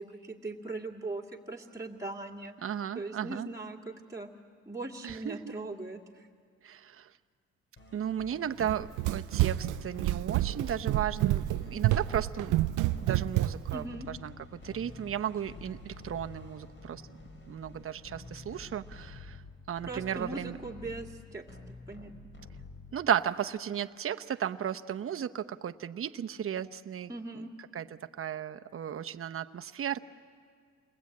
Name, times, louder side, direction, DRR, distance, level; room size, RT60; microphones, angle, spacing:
voice 1, 0.0-2.5 2.9-4.3 4.7-6.3 13.7-14.1 19.8-22.1 27.1-27.5, right 2 dB, 10° right, -2 dB, 2.1 m, -40 dB
voice 2, 2.6-3.5 5.0-5.5 6.6-7.2 7.9-12.5 13.0-14.3 14.6-17.2 17.5-19.4 19.7-20.6 22.9-30.0, right 9 dB, 45° right, 8 dB, 0.9 m, -35 dB
sound 1, 7.8-23.2, left 3 dB, 40° left, 4.1 m, -48 dB
Run, 8.6-13.8, right 16 dB, 85° right, 0.6 m, -29 dB
29.0 x 21.0 x 8.5 m, 2.1 s
cardioid pair, 90°, 30 cm